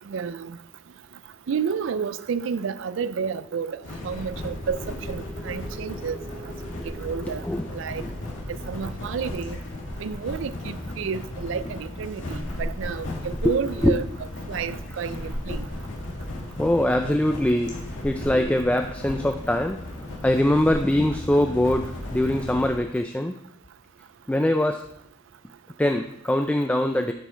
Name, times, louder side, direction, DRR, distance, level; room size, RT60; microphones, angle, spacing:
voice 1, 0.1-0.6 1.5-4.8 5.1-6.2 6.4-6.5 6.8-7.4 7.7-8.0 8.5-9.6 10.0-14.0 14.5-15.6, right 6 dB, 75° right, 0.4 m, -30 dB
sound 1, 2.6-10.7, right 2 dB, 30° left, 3.0 m, -46 dB
sound 2, 3.8-22.8, left 1 dB, 70° left, 2.4 m, -35 dB
voice 2, 7.3-7.7 8.0-8.1 13.4-13.5 13.8-14.0 16.6-19.8 20.2-23.3 24.3-24.8 25.8-27.1, left 1 dB, 5° left, 0.3 m, -23 dB
8.3 x 6.1 x 4.5 m
head